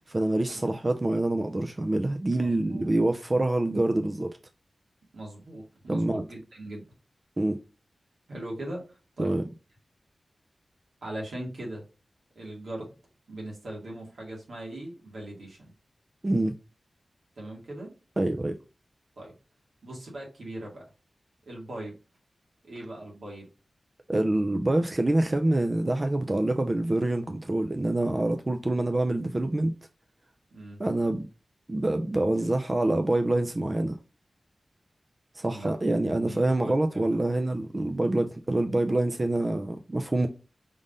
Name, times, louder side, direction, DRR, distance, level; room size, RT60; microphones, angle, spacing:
voice 1, 0.0-4.3 5.9-6.2 7.4-7.6 9.2-9.4 16.2-16.6 18.2-18.6 24.1-29.7 30.8-31.3 31.7-34.0 35.3-40.3, right 2 dB, 35° right, 0.5 m, -26 dB
voice 2, 2.4-2.9 5.1-6.8 8.3-9.3 11.0-11.8 12.4-12.9 13.3-15.7 17.4-17.9 19.2-19.3 19.8-20.8 21.5-22.0 22.6-23.5 30.5-30.8 35.5-37.2, right 1 dB, 80° right, 2.2 m, -40 dB
5.0 x 3.6 x 2.6 m
wide cardioid pair, 65°, 0 cm